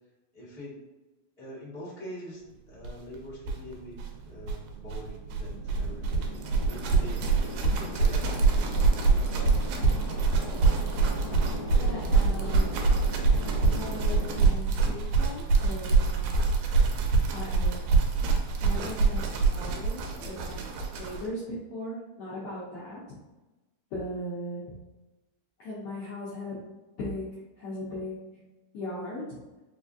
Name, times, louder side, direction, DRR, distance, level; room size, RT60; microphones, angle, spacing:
voice 1, 0.3-0.8 1.4-6.0 6.7-7.3 7.6-8.9 9.2-9.6, equal, 45° right, -13 dB, 0.4 m, -44 dB
sound 1, 2.8-2.9 3.1-3.2 3.4-21.3, right 4 dB, 80° right, 1.9 m, -25 dB
sound 2, 5.1-14.5, left 2 dB, 60° left, 1.5 m, -40 dB
voice 2, 11.7-12.9 13.7-16.4 17.3-17.8 18.6-19.2 19.5-23.0 23.9-24.7 25.6-26.6 27.0-27.3 27.6-28.2 28.7-29.2, left 1 dB, 80° left, -8 dB, 1.3 m, -38 dB
4.8 x 2.4 x 2.5 m, 1.1 s
omnidirectional pair, 3.5 m